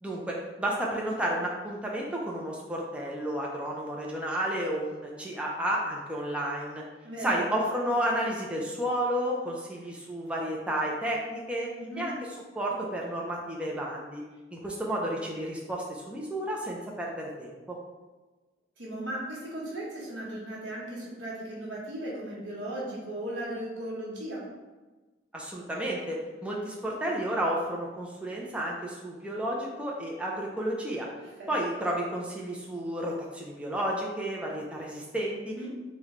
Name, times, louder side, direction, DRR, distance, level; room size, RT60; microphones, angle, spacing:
voice 1, 0.0-6.8 7.2-11.7 12.0-12.1 12.6-14.2 14.5-17.8 25.3-31.1 31.5-35.6, right 1 dB, 5° right, -3 dB, 0.4 m, -31 dB
voice 2, 7.0-7.5 11.8-12.1 18.8-24.4 31.2-31.5 35.5-35.7, right 1 dB, 90° right, -5 dB, 1.0 m, -37 dB
3.1 x 2.2 x 3.6 m, 1.2 s
head